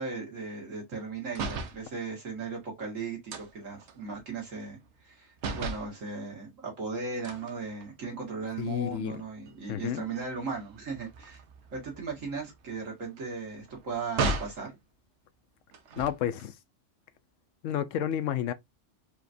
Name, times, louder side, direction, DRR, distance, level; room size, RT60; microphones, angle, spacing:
voice 1, 0.0-11.4 11.7-14.8, right 4 dB, 90° right, 2.2 m, -37 dB
sound 1, 1.3-1.8 3.3-5.1 5.4-5.9 7.2-8.3 8.8-9.0 9.3-14.6 15.7-16.4, right 3 dB, 65° right, 1.1 m, -37 dB
voice 2, 8.6-9.2 9.7-10.0 16.0-16.5 17.6-18.5, left 10 dB, 80° left, 1.0 m, -30 dB
4.9 x 2.9 x 2.5 m
omnidirectional pair, 1.3 m